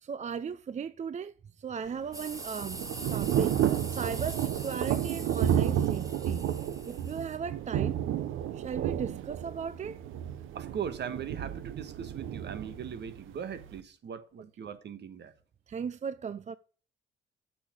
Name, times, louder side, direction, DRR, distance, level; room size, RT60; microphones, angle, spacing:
voice 1, 0.0-2.8 3.1-3.6 3.9-6.5 6.9-8.0 8.5-10.0 15.7-16.6, right 6 dB, 35° right, 0.5 m, -37 dB
Thunder / Rain, 1.9-13.8, right 10 dB, 85° right, 0.8 m, -31 dB
sound 1, 2.1-7.4, right 1 dB, 15° right, 1.9 m, -44 dB
voice 2, 10.5-15.3, right 7 dB, 60° right, 1.5 m, -39 dB
8.5 x 7.1 x 6.3 m
cardioid pair, 90°, 20 cm